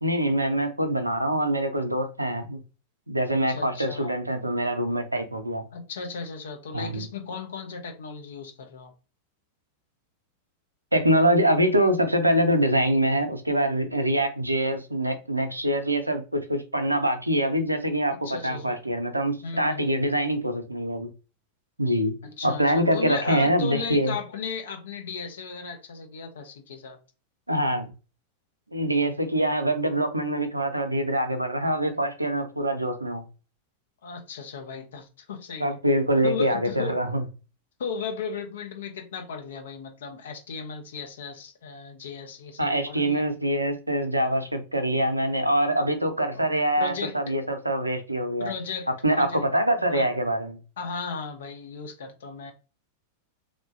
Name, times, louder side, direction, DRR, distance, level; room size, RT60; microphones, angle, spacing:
voice 1, 0.0-2.6 3.1-5.6 6.7-7.1 10.9-21.1 21.8-22.2 22.4-24.2 27.5-27.9 28.7-33.2 35.6-37.2 42.6-48.5 49.0-50.6, right 1 dB, 85° right, 0.4 m, -24 dB
voice 2, 3.5-4.1 5.7-8.9 18.1-18.8 19.4-20.0 22.2-27.0 34.0-35.8 36.2-37.0 37.8-43.2 46.3-47.2 48.4-49.4 49.8-50.1 50.8-52.5, left 5 dB, 60° left, 0.6 m, -36 dB
3.0 x 2.1 x 2.6 m
figure-of-eight pair, 90°, 0 cm